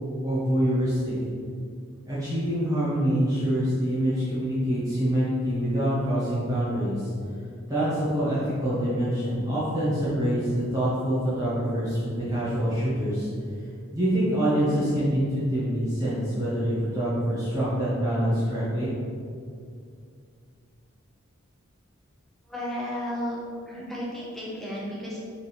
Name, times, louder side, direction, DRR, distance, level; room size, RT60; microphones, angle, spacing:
voice 1, 0.2-1.1 2.1-7.1 7.7-13.3 13.9-18.9, equal, 15° right, -11 dB, 1.2 m, -25 dB
voice 2, 22.4-23.4 23.7-25.2, equal, ahead, -7 dB, 1.1 m, -33 dB
5.4 x 3.8 x 5.0 m, 2.3 s
head